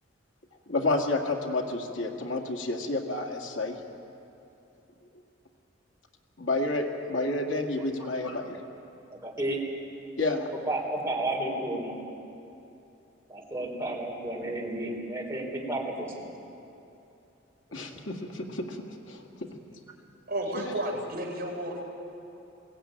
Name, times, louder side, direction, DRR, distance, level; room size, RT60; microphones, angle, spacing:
voice 1, 0.7-3.8 6.4-8.6 10.2-10.5 17.7-18.8 19.1-19.2, left 2 dB, 85° left, 2 dB, 2.1 m, -30 dB
voice 2, 9.1-9.6 10.7-12.0 13.3-16.3, right 1 dB, 15° right, -2 dB, 3.7 m, -32 dB
voice 3, 20.3-21.8, right 1 dB, 50° right, -1 dB, 4.3 m, -32 dB
21.5 x 17.0 x 8.9 m, 2.8 s
head